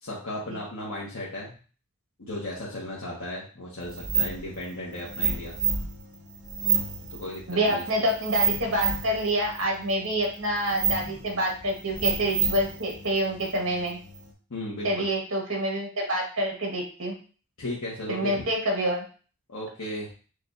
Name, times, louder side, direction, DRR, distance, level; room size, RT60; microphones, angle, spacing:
voice 1, 0.0-1.5 2.2-5.5 7.1-7.8 14.5-15.1 17.6-18.4 19.5-20.1, left 1 dB, 70° left, -7 dB, 1.1 m, -35 dB
sound 1, 3.8-14.3, right 5 dB, 35° right, 0.8 m, -30 dB
voice 2, 7.5-14.0 14.8-17.2 18.1-19.0, right 1 dB, 60° right, 0 dB, 1.6 m, -27 dB
6.6 x 2.5 x 2.6 m, 0.39 s
head